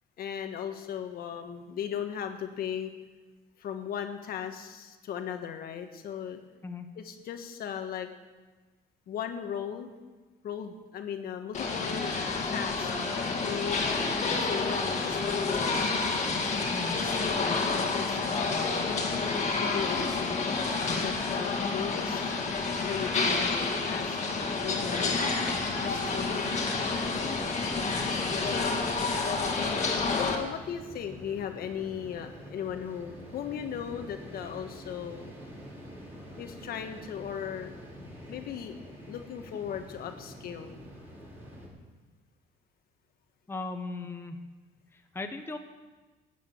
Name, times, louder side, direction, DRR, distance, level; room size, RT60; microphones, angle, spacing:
voice 1, 0.2-2.9 3.6-6.4 7.0-8.1 9.1-9.9 10.4-12.1 12.5-12.9 13.4-13.9 14.2-15.9 16.9-18.5 19.6-20.5 21.0-22.3 22.9-25.3 25.8-26.5 28.4-29.1 30.1-35.3 36.4-37.7 38.3-40.8, left 8 dB, 65° left, 6 dB, 1.5 m, -37 dB
sound 1, 11.5-30.4, left 4 dB, 45° left, 2.2 m, -29 dB
sound 2, 24.4-41.7, equal, 15° right, 5.3 m, -46 dB
voice 2, 43.5-44.4 44.9-45.6, left 3 dB, 15° left, 5 dB, 1.1 m, -37 dB
13.5 x 9.3 x 7.5 m, 1.3 s
cardioid pair, 110°, 17 cm